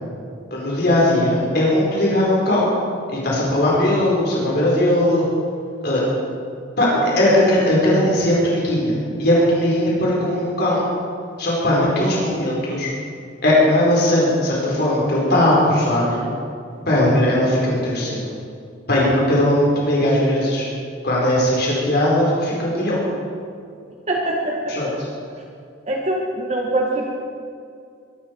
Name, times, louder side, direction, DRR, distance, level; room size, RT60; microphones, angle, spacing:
voice 1, 0.5-2.7 3.1-5.3 5.8-6.1 6.8-10.8 11.4-12.9 13.4-16.3 16.9-18.3 18.9-20.6 21.0-23.0 24.7-25.1, left 1 dB, 60° left, -5 dB, 4.5 m, -18 dB
voice 2, 24.1-24.7 25.9-27.1, right 1 dB, 40° right, -1 dB, 1.8 m, -23 dB
23.0 x 12.0 x 4.7 m, 2.3 s
head